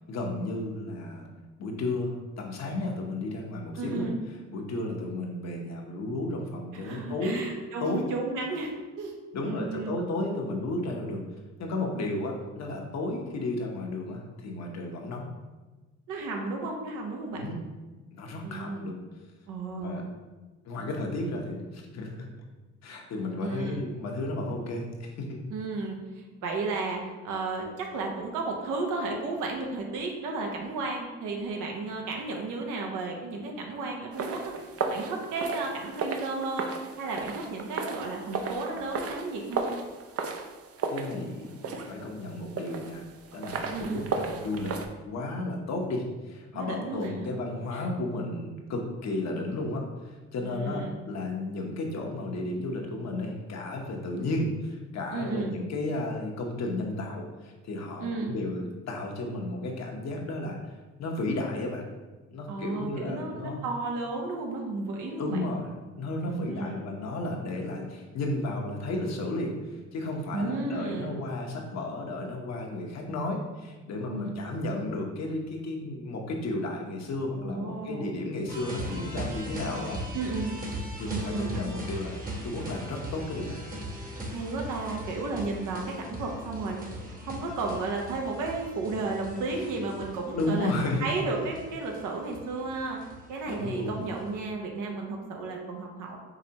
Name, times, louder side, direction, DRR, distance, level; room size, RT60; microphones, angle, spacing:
voice 1, 0.1-1.3 1.6-4.1 4.5-7.4 7.8-8.1 9.3-11.2 11.6-15.3 17.3-17.6 18.1-19.0 19.7-20.0 20.6-22.3 22.8-25.4 40.9-43.0 43.3-44.7 45.0-60.6 61.0-61.8 62.3-63.6 65.2-65.7 66.0-80.0 81.0-82.2 82.4-83.6 90.3-91.1 93.5-94.0, left 2 dB, 60° left, 1 dB, 0.9 m, -33 dB
voice 2, 3.8-4.2 6.7-9.1 9.4-10.0 16.1-17.5 18.4-18.9 19.5-20.0 23.4-24.0 25.5-34.4 34.9-39.8 43.7-44.1 46.5-47.3 47.7-47.9 50.4-51.0 55.1-55.6 58.0-58.4 62.5-65.5 66.3-66.9 70.3-71.2 74.1-74.4 77.4-78.2 80.1-80.6 81.1-81.6 84.3-86.8 87.2-96.2, right 3 dB, 90° right, 1 dB, 0.9 m, -33 dB
sound 1, 34.1-44.9, right 4 dB, 50° right, 0.5 m, -35 dB
sound 2, 78.5-94.3, equal, 30° right, 1.0 m, -39 dB
4.9 x 3.2 x 2.8 m, 1.2 s
cardioid pair, 90°, 30 cm